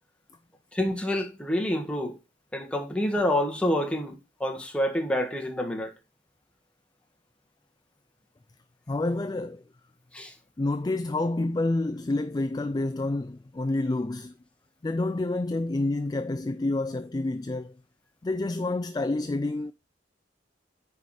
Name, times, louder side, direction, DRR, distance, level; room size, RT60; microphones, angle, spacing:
voice 1, 0.7-2.2 2.5-5.9 10.1-10.3, left 1 dB, 5° left, 1.5 m, -28 dB
voice 2, 8.9-9.6 10.6-14.3 14.8-17.8 18.2-19.7, left 2 dB, 20° left, 0.3 m, -28 dB
9.6 x 4.8 x 4.1 m
head